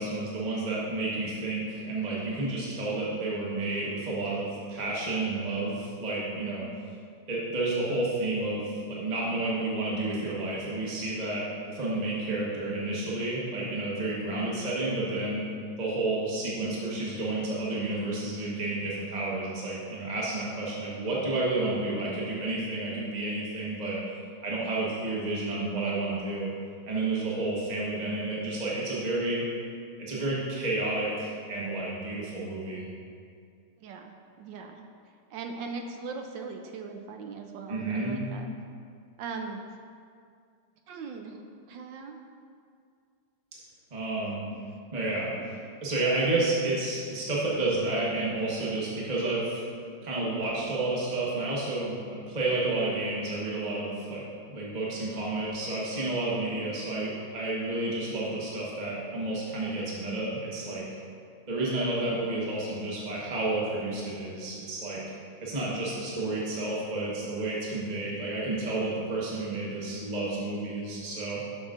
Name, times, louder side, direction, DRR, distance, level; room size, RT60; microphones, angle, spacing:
voice 1, 0.0-6.6 7.3-11.4 11.7-15.5 15.8-24.0 24.4-26.5 26.9-29.4 30.0-32.9 37.7-38.2 43.9-44.4 44.9-45.3 45.8-49.6 50.0-60.8 61.5-65.0 65.4-71.4, right 2 dB, 25° right, -6 dB, 1.0 m, -30 dB
voice 2, 33.8-34.8 35.3-38.5 39.2-39.6 40.9-41.4 41.7-42.2 44.2-44.3, right 4 dB, 75° right, 4 dB, 1.2 m, -39 dB
11.0 x 6.2 x 2.5 m, 2.3 s
omnidirectional pair, 2.2 m